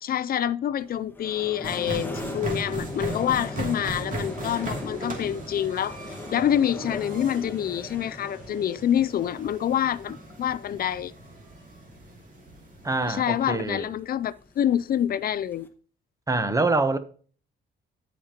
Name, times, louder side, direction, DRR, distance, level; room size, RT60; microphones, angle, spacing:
voice 1, 0.0-6.0 6.3-11.1 13.1-15.7, left 10 dB, 50° left, 0.4 m, -26 dB
sound 1, 0.8-15.7, left 2 dB, 10° left, 1.4 m, -40 dB
sound 2, 1.6-13.6, right 2 dB, 40° right, 2.6 m, -38 dB
voice 2, 12.8-13.9 16.3-17.0, right 3 dB, 15° right, 0.9 m, -25 dB
15.0 x 5.2 x 2.9 m
cardioid pair, 90°, 20 cm